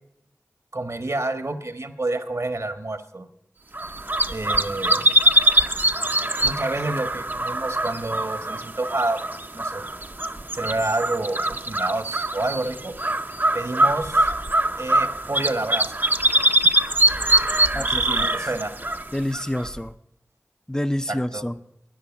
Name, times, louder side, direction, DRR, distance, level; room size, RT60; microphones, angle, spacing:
voice 1, 0.7-3.3 4.3-5.1 6.4-9.2 9.5-9.9 10.5-13.0 13.5-14.3 14.8-15.9 17.7-18.7 21.1-21.4, right 2 dB, 60° right, 8 dB, 1.4 m, -28 dB
sound 1, 3.7-19.8, right 1 dB, 35° right, 0.7 m, -23 dB
voice 2, 17.7-18.2 19.1-19.9 20.7-21.5, left 1 dB, 10° left, 9 dB, 0.5 m, -27 dB
12.5 x 10.0 x 7.2 m, 0.83 s
wide cardioid pair, 40°, 6 cm